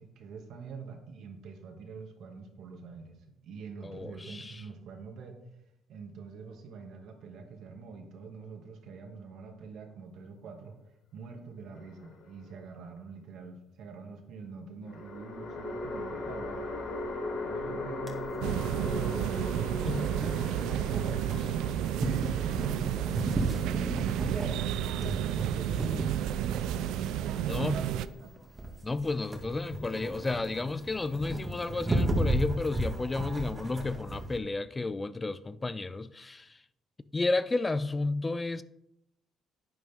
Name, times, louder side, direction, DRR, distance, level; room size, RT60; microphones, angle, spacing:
voice 1, 0.0-3.2 3.4-5.4 5.9-10.8 11.1-16.7 17.4-20.0 20.5-25.4 27.3-28.3, right 5 dB, 70° right, 2.1 m, -45 dB
voice 2, 3.8-4.6 19.9-20.0 27.5-27.8 28.8-36.6 37.1-38.6, left 3 dB, 20° left, 0.4 m, -32 dB
sound 1, 11.7-12.6 14.9-26.2, left 2 dB, 80° left, 2.7 m, -39 dB
sound 2, 18.1-34.4, right 1 dB, 20° right, 2.0 m, -35 dB
sound 3, 18.4-28.1, right 11 dB, 85° right, 0.4 m, -31 dB
10.5 x 9.5 x 3.6 m
cardioid pair, 110°, 0 cm